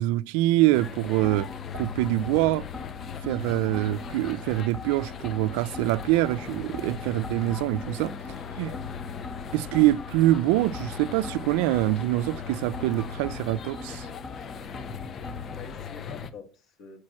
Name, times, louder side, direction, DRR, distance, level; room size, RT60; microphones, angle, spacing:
voice 1, 0.0-2.6 3.2-8.1 8.6-8.7 9.5-14.1, right 16 dB, 75° right, 0.5 m, -25 dB
sound 1, 0.7-16.3, left 7 dB, 30° left, 0.9 m, -39 dB
sound 2, 1.2-15.6, left 3 dB, 10° left, 1.7 m, -42 dB
voice 2, 8.6-9.0 15.3-17.0, left 6 dB, 50° left, 2.5 m, -46 dB
8.5 x 6.1 x 7.5 m
cardioid pair, 155°, 0 cm